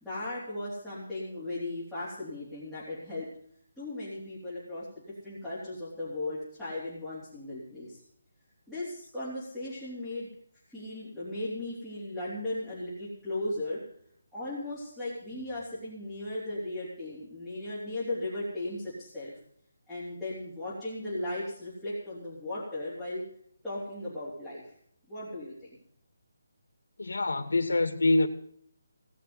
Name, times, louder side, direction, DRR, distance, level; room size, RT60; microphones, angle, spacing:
voice 1, 0.0-3.3 3.8-4.9 5.2-8.0 8.7-10.3 10.7-13.8 14.3-19.3 19.9-23.2 23.6-24.7 25.1-25.8, left 1 dB, ahead, 3.4 m, -37 dB
voice 2, 27.0-28.3, left 2 dB, 90° left, 2.2 m, -25 dB
18.0 x 6.8 x 9.7 m
hypercardioid pair, 175°, 0 cm